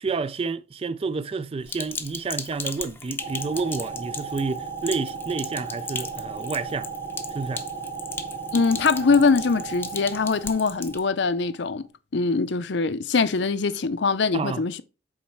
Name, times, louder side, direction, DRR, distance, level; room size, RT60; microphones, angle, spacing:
voice 1, 0.0-6.9 7.3-7.6 14.3-14.6, right 4 dB, 30° right, 0.3 m, -29 dB
Sink (filling or washing), 1.7-11.0, left 4 dB, 10° left, 0.6 m, -37 dB
sound 1, 3.2-11.8, right 5 dB, 55° right, 2.5 m, -36 dB
voice 2, 8.5-11.9 12.1-14.8, left 4 dB, 65° left, 0.6 m, -22 dB
7.2 x 4.4 x 4.5 m
head